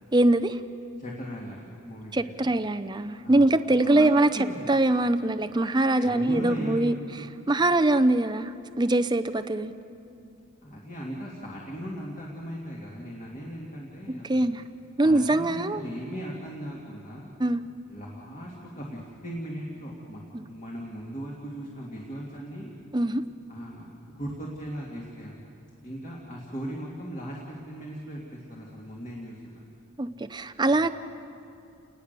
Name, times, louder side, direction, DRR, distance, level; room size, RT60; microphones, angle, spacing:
voice 1, 0.1-0.6 2.1-6.9 7.5-9.7 14.2-14.6 15.0-15.8 17.4-17.6 20.3-20.4 22.9-23.2 30.0-30.9, right 2 dB, 20° right, 10 dB, 0.5 m, -23 dB
voice 2, 1.0-2.5 3.2-4.1 4.3-4.7 6.0-7.3 10.6-14.5 15.0-17.3 17.9-22.7 23.5-25.4 25.8-29.6 30.7-30.9, equal, 35° left, -3 dB, 2.4 m, -38 dB
29.5 x 19.5 x 6.8 m, 2.6 s
head